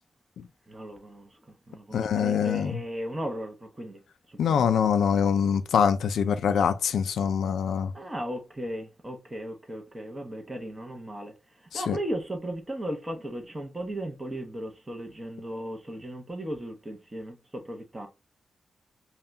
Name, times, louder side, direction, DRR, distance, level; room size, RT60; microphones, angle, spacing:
voice 1, 0.7-1.3 1.7-4.0 4.3-4.7 7.9-11.3 11.7-18.1, equal, 15° right, 0.9 m, -36 dB
voice 2, 1.9-2.8 4.4-7.9 11.7-12.0, left 7 dB, 85° left, 0.4 m, -24 dB
5.5 x 2.3 x 2.7 m
wide cardioid pair, 135°, 0 cm